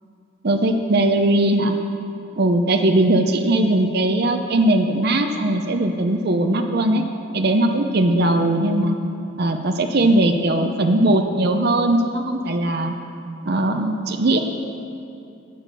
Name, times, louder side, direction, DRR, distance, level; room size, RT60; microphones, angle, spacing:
voice 1, 0.4-1.7 2.4-7.0 7.3-8.9 9.4-12.9 13.5-14.4, right 1 dB, 50° right, 5 dB, 0.7 m, -19 dB
13.5 x 8.2 x 6.7 m, 2.7 s
head